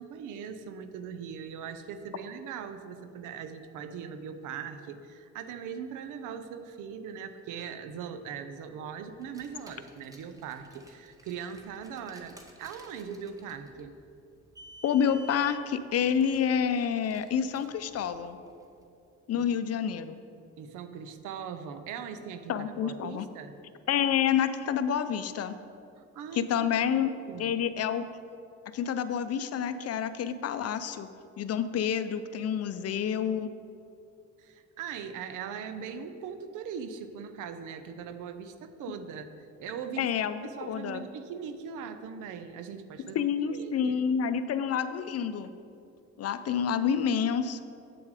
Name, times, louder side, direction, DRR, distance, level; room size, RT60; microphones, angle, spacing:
voice 1, 0.0-13.9 19.4-19.5 20.6-23.5 26.1-26.5 26.9-27.5 34.4-40.1 40.4-44.0, right 7 dB, 90° right, 10 dB, 0.6 m, -40 dB
Car, 9.1-18.7, right 1 dB, 10° right, 1.0 m, -54 dB
voice 2, 14.8-18.4 19.3-20.2 22.5-23.3 23.9-25.6 26.3-27.1 27.4-28.0 28.7-31.1 31.4-33.5 40.0-41.0 43.1-45.5 46.2-47.6, left 8 dB, 55° left, 11 dB, 0.5 m, -28 dB
7.8 x 7.1 x 4.8 m, 2.6 s
cardioid pair, 90°, 30 cm